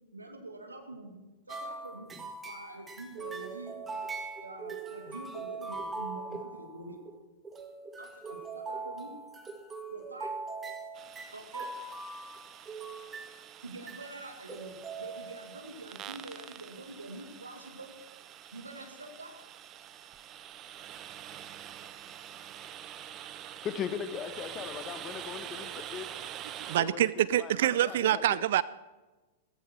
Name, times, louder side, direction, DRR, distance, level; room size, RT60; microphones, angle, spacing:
voice 1, 0.1-2.1 2.5-3.7 4.4-7.0 8.0-9.1 9.9-10.3 11.3-11.7 13.6-17.9 18.5-19.3, right 2 dB, 85° right, 4 dB, 2.5 m, -45 dB
sound 1, 1.5-7.2 7.4-13.5 13.9-14.2 14.5-15.7, right 3 dB, 15° right, 1.8 m, -41 dB
sound 2, 10.9-26.8, right 10 dB, 30° right, 0.9 m, -46 dB
voice 2, 23.6-26.1 26.8-28.4, left 8 dB, 30° left, 10 dB, 1.1 m, -39 dB
voice 3, 26.7-28.6, right 12 dB, 60° right, 19 dB, 0.4 m, -26 dB
15.5 x 15.0 x 4.6 m, 1.2 s
figure-of-eight pair, 100°, 0 cm